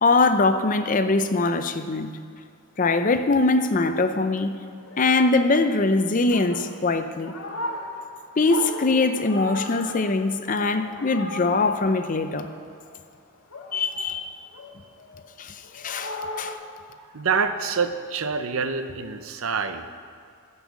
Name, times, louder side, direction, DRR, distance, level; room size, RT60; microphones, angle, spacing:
voice 1, 0.0-2.2 2.8-4.6 5.0-7.3 8.4-12.5 13.7-14.4 15.4-16.6, left 3 dB, 35° left, 9 dB, 0.5 m, -22 dB
sound 1, 3.3-13.2 13.5-16.5, left 1 dB, 75° left, 1.7 m, -38 dB
voice 2, 17.1-19.9, right 5 dB, 70° right, 9 dB, 0.7 m, -26 dB
15.5 x 5.5 x 7.1 m, 2.3 s
head